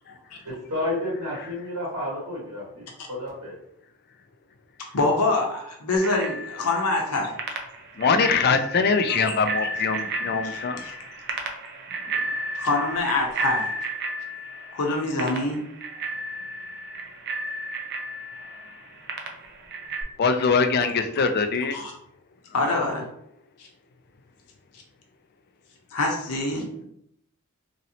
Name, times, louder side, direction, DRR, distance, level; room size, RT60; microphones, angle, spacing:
voice 1, 0.4-3.5, left 1 dB, 70° right, -7 dB, 1.5 m, -31 dB
voice 2, 4.9-7.3 9.1-9.3 10.4-10.9 12.5-13.7 14.7-15.6 21.7-21.9 22.5-23.1 25.9-26.7, left 2 dB, 85° left, 1 dB, 0.7 m, -25 dB
Bicycle bell, 6.0-20.0, right 2 dB, 50° right, 0.5 m, -33 dB
voice 3, 8.0-10.8 20.2-21.8, left 5 dB, 45° left, 7 dB, 0.4 m, -22 dB
3.0 x 2.7 x 2.8 m, 0.72 s
head